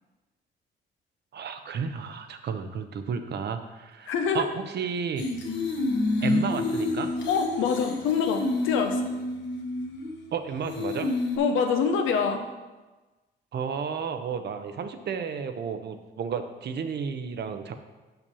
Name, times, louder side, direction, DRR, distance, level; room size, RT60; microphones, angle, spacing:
voice 1, 1.3-5.3 6.2-7.1 10.3-11.1 13.5-17.7, right 6 dB, 60° right, 8 dB, 0.8 m, -32 dB
voice 2, 4.1-4.5 7.3-9.0 11.4-12.4, left 6 dB, 90° left, 5 dB, 1.0 m, -25 dB
sound 1, 5.2-10.3 10.7-11.4, left 2 dB, 65° left, 1.4 m, -29 dB
5.9 x 5.4 x 6.8 m, 1.2 s
cardioid pair, 90°, 20 cm